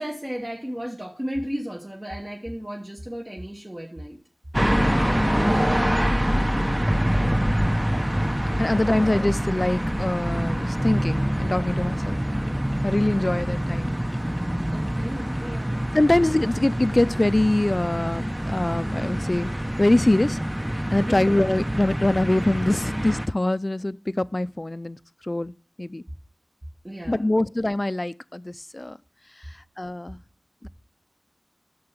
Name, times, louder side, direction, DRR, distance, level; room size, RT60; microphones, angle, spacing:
voice 1, 0.0-4.2 14.7-15.8 21.0-21.3 26.8-27.3, equal, 30° right, 1.4 m, -34 dB
sound 1, 4.5-23.3, equal, 10° right, 0.7 m, -25 dB
voice 2, 8.6-12.2 12.8-13.9 15.9-19.5 19.8-20.4 20.9-25.0 25.2-26.0 27.1-29.0 29.4-30.2 30.6-30.7, left 1 dB, 40° left, 0.4 m, -24 dB
8.6 x 7.0 x 5.8 m
wide cardioid pair, 50°, 0 cm